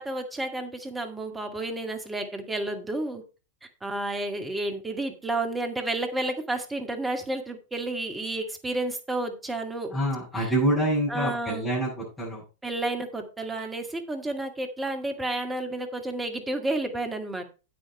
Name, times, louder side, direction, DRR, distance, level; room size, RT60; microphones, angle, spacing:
voice 1, 0.0-3.2 3.8-9.9 10.4-10.5 11.1-11.7 12.6-17.4, right 2 dB, 10° right, 5 dB, 2.1 m, -31 dB
voice 2, 9.9-12.4, right 1 dB, 10° left, -9 dB, 7.3 m, -26 dB
9.0 x 8.5 x 4.4 m, 0.32 s
figure-of-eight pair, 90°, 0 cm